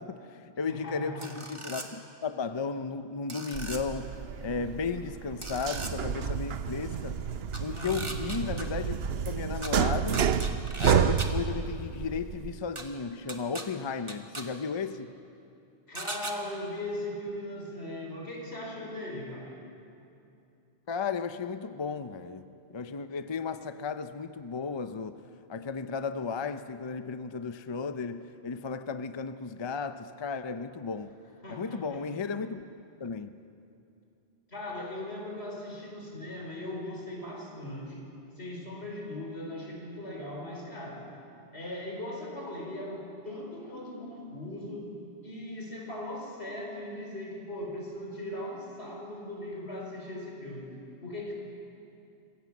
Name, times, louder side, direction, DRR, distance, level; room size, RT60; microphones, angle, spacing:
voice 1, 0.0-7.2 7.6-9.0 9.2-10.4 10.8-15.1 20.9-25.2 25.5-31.1 31.5-32.7 33.0-33.3, left 5 dB, 30° left, 0.6 m, -34 dB
voice 2, 0.7-1.3 7.7-8.0 15.9-19.6 31.4-32.3 34.5-38.1 38.4-41.1 41.5-44.9 45.2-50.7 51.0-51.3, left 1 dB, 85° left, 4.9 m, -39 dB
sound 1, 1.2-1.9 3.3-3.8 5.4-5.9 7.5-8.6 9.6-9.7 10.1-11.3 12.8-12.9 13.3-13.6 14.1-14.4 15.9-16.3, right 2 dB, 30° right, 1.5 m, -38 dB
sound 2, 3.5-12.6, right 7 dB, 70° right, 1.0 m, -30 dB
26.0 x 16.0 x 7.3 m
omnidirectional pair, 1.1 m